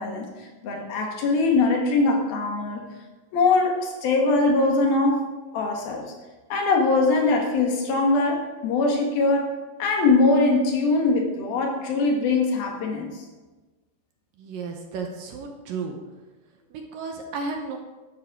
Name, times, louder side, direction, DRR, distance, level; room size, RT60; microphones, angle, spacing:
voice 1, 0.0-2.8 3.3-5.3 5.5-6.1 6.5-9.5 9.8-13.2, left 3 dB, 70° left, 1 dB, 3.4 m, -22 dB
voice 2, 14.4-16.0 16.7-17.8, right 4 dB, 70° right, 3 dB, 2.4 m, -33 dB
13.0 x 11.5 x 3.7 m, 1.2 s
omnidirectional pair, 4.6 m